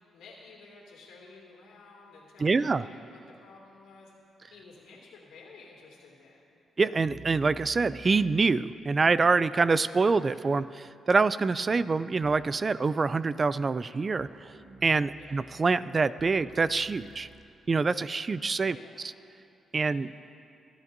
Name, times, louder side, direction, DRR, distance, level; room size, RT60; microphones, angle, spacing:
voice 1, 0.0-4.1 4.5-6.6 15.1-15.4 18.7-19.0 19.7-20.3, left 4 dB, 90° left, -3 dB, 2.5 m, -52 dB
voice 2, 2.4-2.9 6.8-14.3 14.8-17.3 17.7-18.8 19.7-20.1, right 4 dB, 35° right, 16 dB, 0.3 m, -25 dB
sound 1, 7.0-8.5 10.2-10.7 12.2-12.6 14.2-15.7 16.2-17.5, right 4 dB, 65° right, 0.9 m, -50 dB
24.0 x 11.0 x 2.6 m, 2.6 s
cardioid pair, 75°, 0 cm